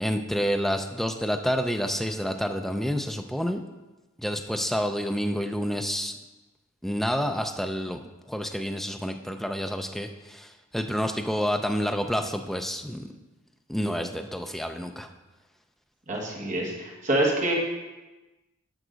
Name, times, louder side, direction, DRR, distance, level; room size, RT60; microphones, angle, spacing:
voice 1, 0.0-3.6 4.2-6.1 6.8-13.1 13.7-15.1, equal, ahead, 5 dB, 0.4 m, -29 dB
voice 2, 16.1-17.5, right 1 dB, 35° right, -2 dB, 1.7 m, -26 dB
11.0 x 6.0 x 3.9 m, 1.1 s
head